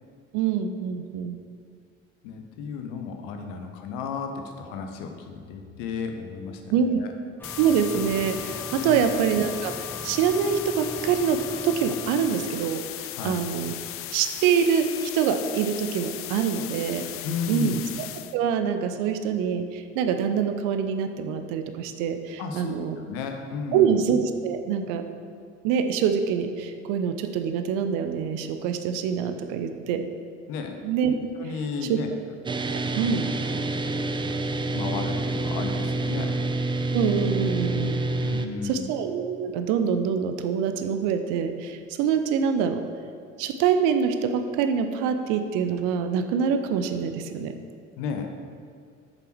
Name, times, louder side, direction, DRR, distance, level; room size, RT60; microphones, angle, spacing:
voice 1, 0.3-1.4 6.7-7.0 7.6-9.7 10.0-13.7 14.1-17.1 17.5-17.8 18.3-23.0 23.7-25.0 25.6-30.1 30.8-31.1 31.9-32.0 32.7-33.3 36.9-38.0 38.6-42.8 43.4-47.6, right 7 dB, 60° right, 8 dB, 0.7 m, -25 dB
voice 2, 2.2-7.1 8.8-9.1 13.1-13.4 17.2-17.8 22.4-24.0 30.5-30.8 31.4-32.1 33.0-33.2 33.4-33.6 34.7-36.4 38.2-38.9 48.0-48.3, left 5 dB, 60° left, 5 dB, 1.0 m, -33 dB
sound 1, 7.4-18.4, left 14 dB, 40° left, 0.4 m, -37 dB
sound 2, 7.4-12.8, left 2 dB, 5° left, 0.8 m, -40 dB
sound 3, 32.5-38.5, right 2 dB, 15° right, 0.5 m, -27 dB
8.1 x 7.0 x 4.6 m, 2.2 s
figure-of-eight pair, 50°, 36 cm